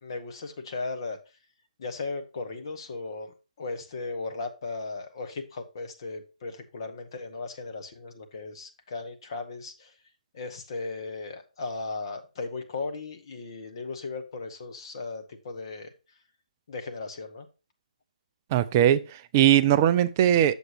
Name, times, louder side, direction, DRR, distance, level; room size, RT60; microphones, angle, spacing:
voice 1, 0.0-1.2 1.8-9.9 10.3-15.9 16.7-17.5, left 3 dB, 35° left, 1.2 m, -36 dB
voice 2, 18.5-20.6, right 11 dB, 20° right, 0.3 m, -20 dB
7.8 x 7.2 x 3.1 m
figure-of-eight pair, 150°, 4 cm